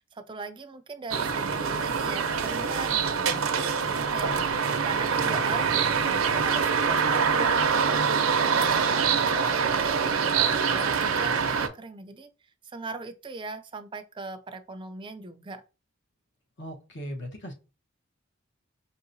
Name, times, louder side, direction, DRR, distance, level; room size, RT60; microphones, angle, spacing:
voice 1, 0.0-3.4 3.8-4.3 4.8-12.3 12.6-15.6, right 3 dB, 25° right, 0.4 m, -40 dB
sound 1, 1.1-11.7, right 6 dB, 85° right, 0.6 m, -25 dB
voice 2, 4.2-4.6 16.6-17.5, equal, 55° left, 1.0 m, -39 dB
5.4 x 2.8 x 2.6 m
head